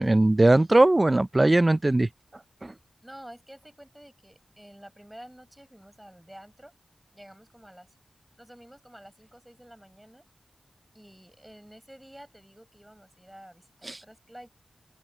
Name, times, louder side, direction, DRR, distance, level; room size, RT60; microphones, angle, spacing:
voice 1, 0.0-2.1 2.6-2.7, right 2 dB, 25° right, 0.4 m, -19 dB
voice 2, 3.0-6.7 7.1-7.9 8.4-10.3 10.9-14.5, right 1 dB, 10° right, 7.6 m, -49 dB
open air
wide cardioid pair, 80°, 0 cm